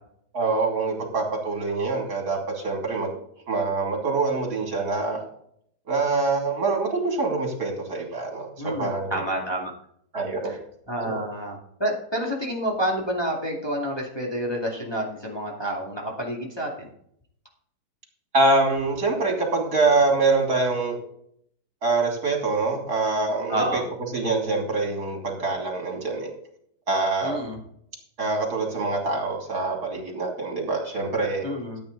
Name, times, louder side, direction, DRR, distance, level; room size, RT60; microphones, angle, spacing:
voice 1, 0.3-3.1 3.5-5.2 5.9-9.2 10.1-10.5 11.0-11.2 18.3-21.0 21.8-23.8 24.1-26.3 26.9-27.4 28.2-31.5, right 3 dB, 60° right, 1 dB, 3.4 m, -25 dB
voice 2, 8.6-9.7 10.5-10.6 10.9-16.9 23.5-23.8 27.2-27.6 31.4-31.8, right 1 dB, 15° left, -2 dB, 2.3 m, -29 dB
14.0 x 8.6 x 4.0 m, 0.68 s
omnidirectional pair, 1.8 m